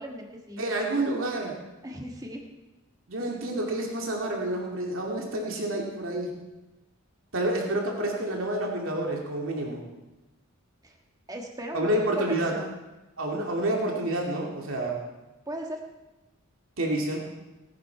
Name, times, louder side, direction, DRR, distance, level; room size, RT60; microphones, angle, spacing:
voice 1, 0.0-0.6 1.8-2.5 10.8-11.0 11.3-11.9 12.2-12.8 13.3-13.4 15.5-15.8, right 1 dB, 20° right, 1 dB, 1.7 m, -38 dB
voice 2, 0.6-1.5 3.1-6.3 7.3-9.8 11.7-12.5 13.2-14.9 16.8-17.2, right 1 dB, 75° right, -1 dB, 2.5 m, -28 dB
18.5 x 11.0 x 4.7 m, 1.1 s
head